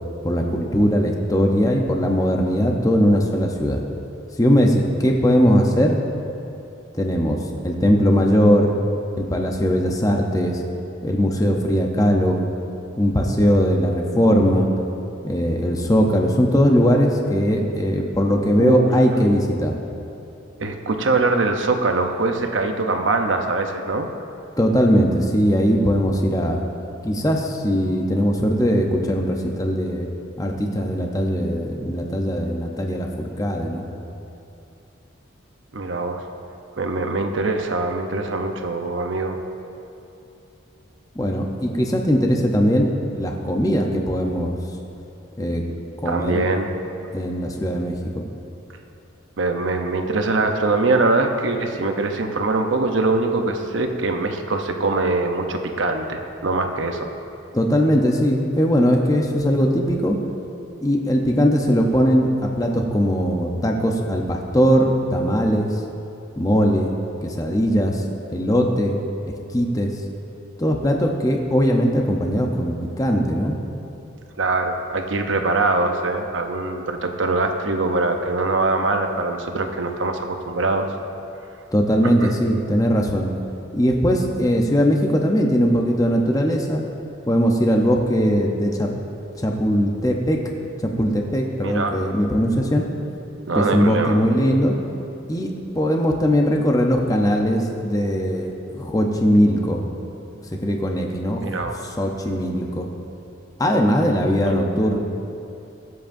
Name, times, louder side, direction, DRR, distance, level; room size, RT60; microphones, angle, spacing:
voice 1, 0.2-3.8 4.4-6.0 6.9-7.4 7.6-8.7 9.2-10.6 11.0-12.4 13.0-14.7 15.2-19.8 24.6-26.6 27.0-30.1 30.4-33.8 41.1-44.6 45.4-45.6 46.0-46.4 47.1-48.3 57.5-60.2 60.8-65.8 66.4-66.9 67.2-69.0 69.3-70.0 70.6-73.5 81.7-83.3 83.7-86.8 87.2-88.9 89.4-90.4 90.8-92.8 93.5-94.7 95.3-99.8 100.6-101.6 102.0-102.9 103.6-105.0, equal, 15° left, 1 dB, 0.8 m, -20 dB
voice 2, 18.6-18.9 20.6-24.1 35.7-36.2 36.8-39.4 46.0-46.7 49.4-57.1 74.4-80.9 82.2-82.3 91.6-92.0 93.5-94.2 101.4-101.8 104.5-104.6, right 3 dB, 70° right, 5 dB, 0.8 m, -23 dB
23.0 x 7.7 x 2.7 m, 2.8 s
head